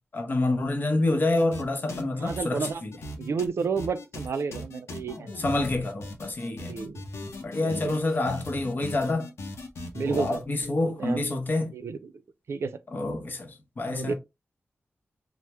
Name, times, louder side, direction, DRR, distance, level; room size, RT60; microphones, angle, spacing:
voice 1, 0.1-2.9 5.4-6.7 7.4-9.3 10.1-11.7 12.9-14.1, left 2 dB, 45° left, 0.7 m, -27 dB
sound 1, 1.4-1.6 1.9-10.4, left 2 dB, 90° left, 0.6 m, -38 dB
voice 2, 2.2-2.8 3.2-5.4 6.7-7.0 7.6-7.9 9.9-10.4 10.8-11.2 11.7-12.1 12.5-12.8 13.9-14.1, right 5 dB, 75° right, 0.4 m, -31 dB
3.3 x 2.0 x 2.9 m
wide cardioid pair, 120°, 4 cm